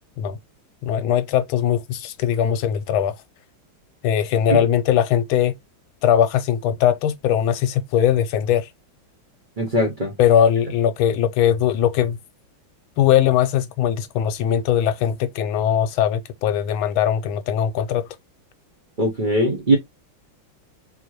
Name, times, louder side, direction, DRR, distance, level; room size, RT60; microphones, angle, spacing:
voice 1, 0.8-3.1 4.0-5.5 6.0-8.7 10.2-12.2 13.0-18.1, left 9 dB, 85° left, 1.5 m, -20 dB
voice 2, 9.6-10.1 19.0-19.8, right 1 dB, 35° right, 0.8 m, -20 dB
3.9 x 2.9 x 3.0 m
omnidirectional pair, 2.2 m